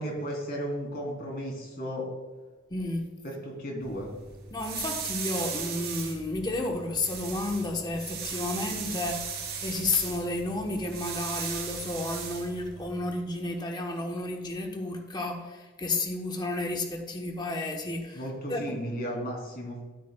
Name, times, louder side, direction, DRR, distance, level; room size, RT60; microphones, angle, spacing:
voice 1, 0.0-2.1 3.2-4.1 18.1-19.8, equal, 50° left, -1 dB, 2.8 m, -34 dB
voice 2, 2.7-3.1 4.5-18.2 18.5-18.8, left 2 dB, 20° left, 3 dB, 0.9 m, -32 dB
sound 1, 3.8-13.0, right 6 dB, 50° right, 2.8 m, -37 dB
13.0 x 8.3 x 2.2 m, 1.3 s
head